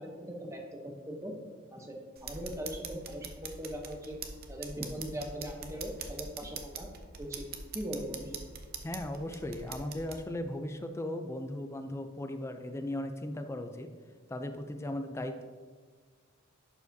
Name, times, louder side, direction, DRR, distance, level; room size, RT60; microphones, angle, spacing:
voice 1, 0.0-1.3 1.7-4.2 4.5-6.9 7.2-7.5 7.7-8.4, equal, 15° right, 1 dB, 0.8 m, -40 dB
sound 1, 2.2-10.2, right 5 dB, 45° right, 0.6 m, -43 dB
voice 2, 8.8-13.9 14.3-15.4, left 1 dB, 15° left, 6 dB, 0.4 m, -37 dB
11.0 x 4.8 x 2.7 m, 1.5 s
head